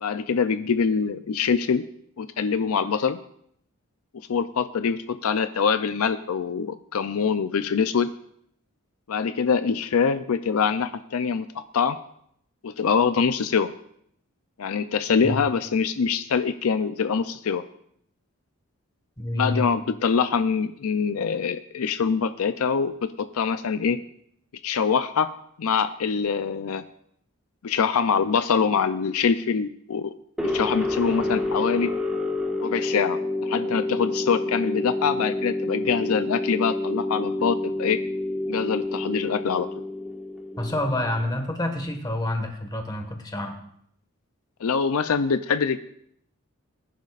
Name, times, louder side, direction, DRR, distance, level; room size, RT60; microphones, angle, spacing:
voice 1, 0.0-1.8 2.2-3.2 4.1-8.1 9.1-11.5 11.7-12.0 12.6-13.7 14.6-17.6 19.3-24.0 24.6-25.3 25.6-26.8 27.6-30.1 30.4-31.9 32.6-38.0 38.5-39.7 44.6-45.8, left 6 dB, 75° left, 11 dB, 0.5 m, -24 dB
voice 2, 19.2-19.7 40.6-43.5, left 1 dB, 20° left, 4 dB, 1.6 m, -28 dB
sound 1, 30.4-41.2, left 2 dB, 5° right, 1.4 m, -28 dB
20.5 x 10.5 x 2.5 m, 0.70 s
head